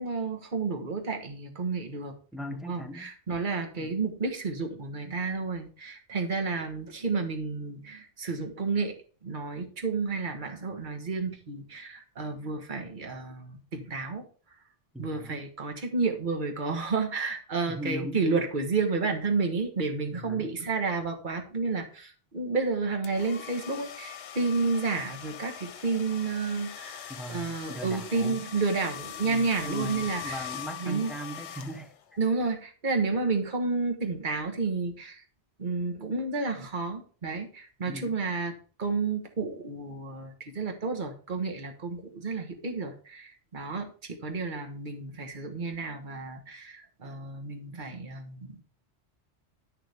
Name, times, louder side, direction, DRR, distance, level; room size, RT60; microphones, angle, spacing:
voice 1, 0.0-2.1 2.7-8.9 9.2-14.2 15.0-27.0 27.3-30.5 30.8-31.1 32.2-35.2 35.6-38.5 38.8-48.6, right 4 dB, 45° right, 1.5 m, -31 dB
voice 2, 2.3-3.1 3.8-3.9 14.9-15.4 17.7-18.3 20.1-20.5 27.1-28.4 29.2-31.9 37.9-38.2, equal, ahead, 0.9 m, -39 dB
sound 1, 23.0-32.2, left 9 dB, 80° left, 1.0 m, -42 dB
10.5 x 6.7 x 3.5 m
omnidirectional pair, 1.1 m